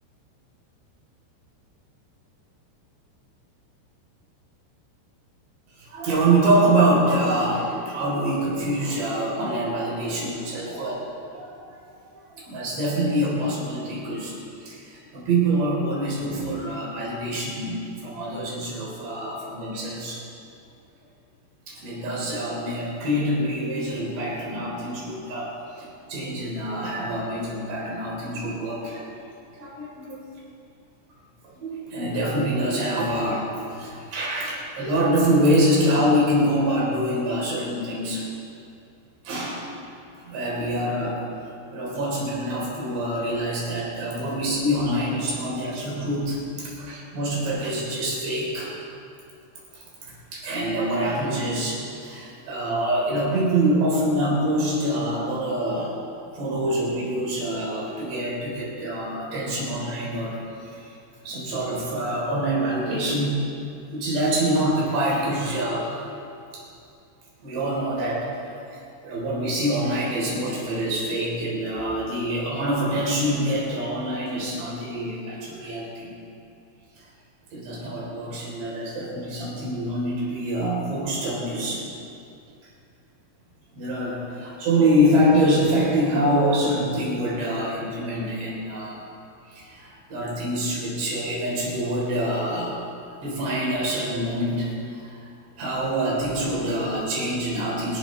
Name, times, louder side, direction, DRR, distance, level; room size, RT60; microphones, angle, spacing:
voice 1, 5.8-11.1 11.3-11.7 12.4-14.3 14.6-20.2 21.7-29.1 29.6-30.2 31.5-38.3 39.3-39.7 40.2-41.2 41.7-48.8 49.7-49.8 50.3-56.0 56.3-60.4 60.7-60.9 61.2-65.9 67.4-76.2 77.5-81.9 83.7-89.0 89.5-92.8 93.2-95.2 95.6-98.0, right 1 dB, 60° right, -5 dB, 5.7 m, -25 dB
26.0 x 11.5 x 3.3 m, 2.5 s
omnidirectional pair, 5.5 m